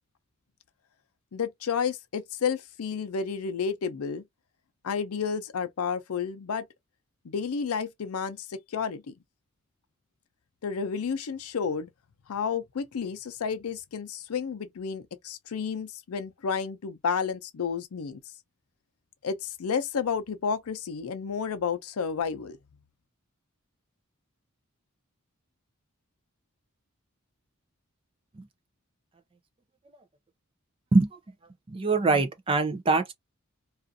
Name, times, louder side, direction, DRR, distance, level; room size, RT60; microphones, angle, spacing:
voice 1, 1.3-4.2 4.8-6.6 7.2-9.1 10.6-11.9 12.3-18.2 19.2-22.6, left 6 dB, 90° left, 0.5 m, -31 dB
voice 2, 31.7-33.1, right 3 dB, 25° right, 0.4 m, -23 dB
2.4 x 2.4 x 2.6 m
head